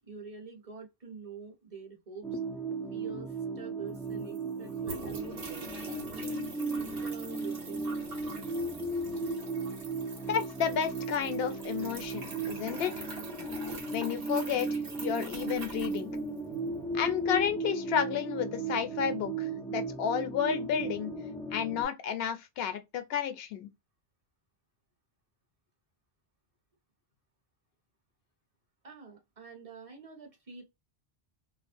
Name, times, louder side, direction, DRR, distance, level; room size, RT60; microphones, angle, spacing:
voice 1, 0.1-2.4 2.9-5.8 6.1-8.0 28.8-30.6, right 5 dB, 35° right, 0.9 m, -46 dB
sound 1, 2.2-21.9, right 3 dB, 5° left, 0.3 m, -36 dB
sound 2, 3.6-3.7 3.9-16.7, right 2 dB, 65° right, 1.1 m, -45 dB
voice 2, 10.3-13.1 13.9-16.2 16.9-21.1 21.5-23.7, left 8 dB, 70° left, 0.8 m, -32 dB
2.5 x 2.0 x 2.4 m
omnidirectional pair, 1.1 m